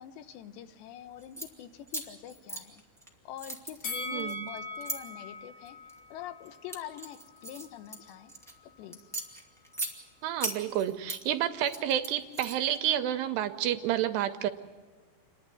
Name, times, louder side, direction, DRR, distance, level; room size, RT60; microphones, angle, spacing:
voice 1, 0.0-2.8 3.2-5.8 6.1-8.3 8.8-9.1, left 11 dB, 85° left, 10 dB, 3.2 m, -45 dB
sound 1, 1.2-1.5 1.9-3.1 3.4-5.0 5.6-6.0 6.4-8.5 8.9-9.9 10.4-11.2 11.6-12.8, right 2 dB, 5° left, 0.3 m, -38 dB
Bell, 3.8-7.0 7.4-7.5, left 2 dB, 55° left, 1.7 m, -40 dB
voice 2, 4.1-4.5 10.2-14.5, right 11 dB, 80° right, 9 dB, 2.8 m, -30 dB
29.0 x 11.5 x 9.0 m, 1.5 s
omnidirectional pair, 5.0 m